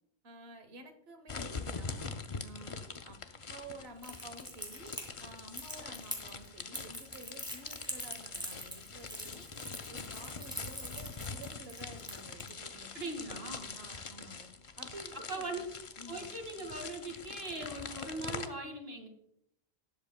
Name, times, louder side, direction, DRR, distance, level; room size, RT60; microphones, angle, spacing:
voice 1, 0.2-2.1 2.4-3.2 3.5-4.9 5.2-9.4 9.9-12.9 13.7-14.5 14.8-15.6 16.0-16.2, right 2 dB, 90° right, 6 dB, 1.3 m, -51 dB
sound 1, 1.3-18.5, left 4 dB, 35° left, 0.6 m, -44 dB
Crackle, 4.0-12.5, equal, 5° right, 2.2 m, -43 dB
voice 2, 12.9-13.8 15.3-15.6 16.1-19.1, right 2 dB, 70° right, 3 dB, 2.3 m, -40 dB
19.0 x 8.1 x 2.2 m, 0.74 s
omnidirectional pair, 1.0 m